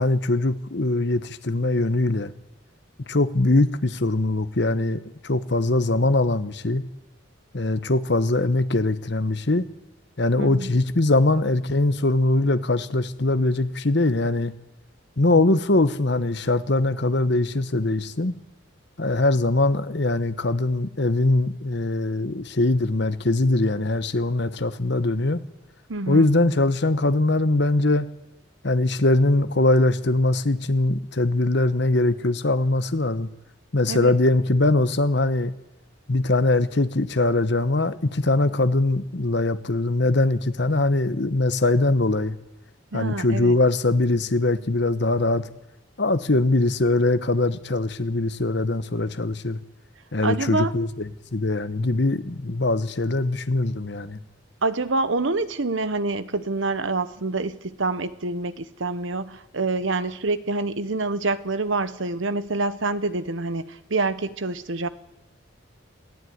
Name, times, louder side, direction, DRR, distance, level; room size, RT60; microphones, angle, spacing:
voice 1, 0.0-2.3 3.1-6.8 7.5-9.7 10.2-14.5 15.2-18.3 19.0-25.4 26.1-28.1 28.6-33.3 33.7-35.5 36.1-42.4 42.9-45.5 46.0-49.6 50.1-54.2, left 2 dB, 55° left, 12 dB, 1.1 m, -22 dB
voice 2, 10.4-10.7 25.9-26.3 33.9-34.1 42.9-43.6 50.2-50.7 54.6-64.9, right 3 dB, 70° right, 13 dB, 1.1 m, -26 dB
22.5 x 14.5 x 9.4 m, 0.92 s
head